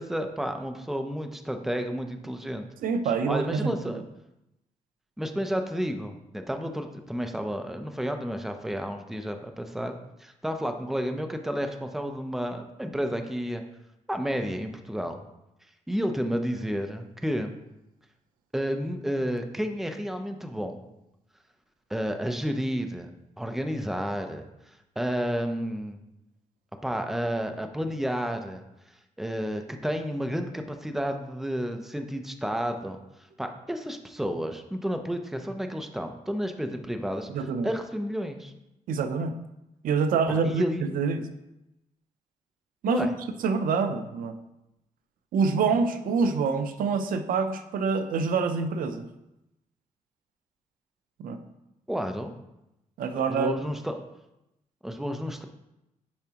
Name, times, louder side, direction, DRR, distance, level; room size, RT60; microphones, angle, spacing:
voice 1, 0.0-2.6 3.0-4.0 5.2-9.9 10.2-13.6 14.1-15.2 15.9-17.6 18.5-20.8 21.9-23.1 23.4-24.5 25.0-26.0 26.8-28.6 29.2-33.0 33.4-38.5 40.3-40.8 42.8-43.1 51.9-52.3 53.3-54.0 54.8-55.4, equal, ahead, 6 dB, 0.6 m, -31 dB
voice 2, 2.8-3.7 37.3-37.7 38.9-39.3 39.8-41.2 42.8-43.1 43.4-44.4 45.3-49.1 51.2-51.4 53.0-53.5, right 5 dB, 90° right, 9 dB, 0.6 m, -26 dB
10.5 x 4.7 x 2.9 m, 0.90 s
cardioid pair, 115°, 14 cm